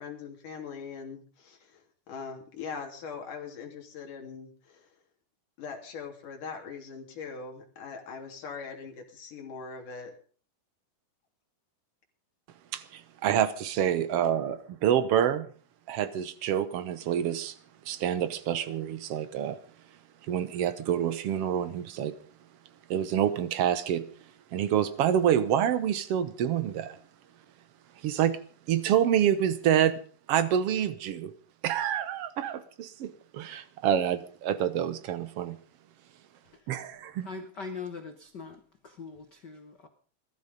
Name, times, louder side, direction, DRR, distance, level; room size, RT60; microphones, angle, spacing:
voice 1, 0.0-4.9 5.6-10.1, left 5 dB, 60° left, 2 dB, 4.5 m, -41 dB
voice 2, 12.7-15.5 15.9-17.5 17.8-19.6 20.3-22.1 22.9-24.1 24.5-27.0 28.0-28.4 28.7-30.0 30.3-31.3 31.6-35.6 36.7-37.3, right 9 dB, 80° right, 12 dB, 1.3 m, -27 dB
voice 3, 37.1-39.9, left 5 dB, 85° left, 7 dB, 0.9 m, -42 dB
20.5 x 13.0 x 5.3 m, 0.42 s
omnidirectional pair, 4.2 m